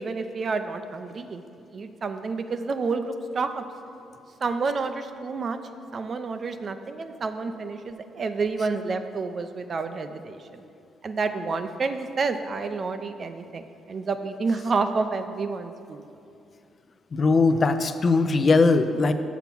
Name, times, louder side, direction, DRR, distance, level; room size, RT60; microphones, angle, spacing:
voice 1, 0.0-1.4 1.7-3.6 4.4-5.6 5.9-10.6 11.0-16.0, right 4 dB, 45° right, 8 dB, 0.5 m, -29 dB
voice 2, 17.1-19.1, left 3 dB, 40° left, 10 dB, 0.5 m, -20 dB
7.1 x 5.7 x 6.0 m, 2.5 s
cardioid pair, 90°, 0 cm